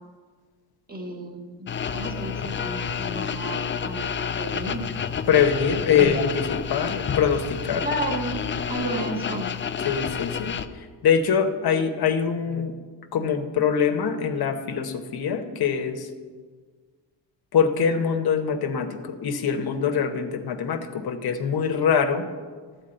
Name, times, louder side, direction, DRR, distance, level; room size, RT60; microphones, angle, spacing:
voice 1, 0.9-1.7 1.9-4.1 4.4-4.8 6.0-6.2 7.8-8.4 8.7-9.5 12.5-12.6, right 1 dB, 20° right, 2 dB, 1.4 m, -32 dB
sound 1, 1.7-10.7, left 7 dB, 30° left, 0.4 m, -30 dB
voice 2, 5.3-7.8 9.8-10.6 11.0-12.7 13.1-16.1 17.5-22.3, left 7 dB, 60° left, 7 dB, 1.0 m, -23 dB
11.5 x 4.6 x 7.7 m, 1.5 s
cardioid pair, 115°, 41 cm